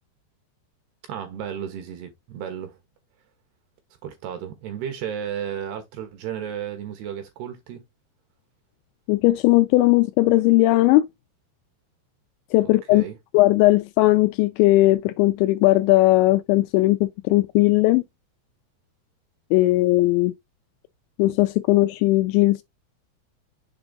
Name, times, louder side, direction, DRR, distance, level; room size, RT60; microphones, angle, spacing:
voice 1, 1.1-2.8 4.0-7.8 12.9-13.2, right 9 dB, 75° right, 2.7 m, -33 dB
voice 2, 9.1-11.1 12.5-13.1 13.3-18.0 19.5-20.3 21.2-22.6, left 18 dB, 85° left, 2.7 m, -18 dB
7.1 x 3.9 x 3.7 m
omnidirectional pair, 5.5 m